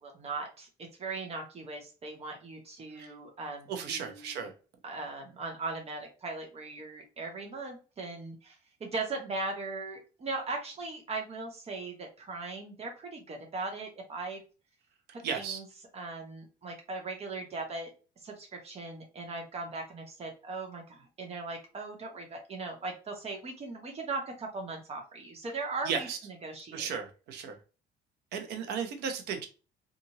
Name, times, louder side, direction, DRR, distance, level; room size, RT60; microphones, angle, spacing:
voice 1, 0.0-4.5 4.8-14.4 15.1-15.6 15.9-17.9 18.2-26.9, right 3 dB, 40° right, 3 dB, 0.9 m, -39 dB
voice 2, 3.7-4.5 15.2-15.6 25.9-26.2 26.7-27.6 28.3-29.5, right 6 dB, 80° right, 5 dB, 0.8 m, -35 dB
2.9 x 2.5 x 2.7 m, 0.34 s
cardioid pair, 110°, 17 cm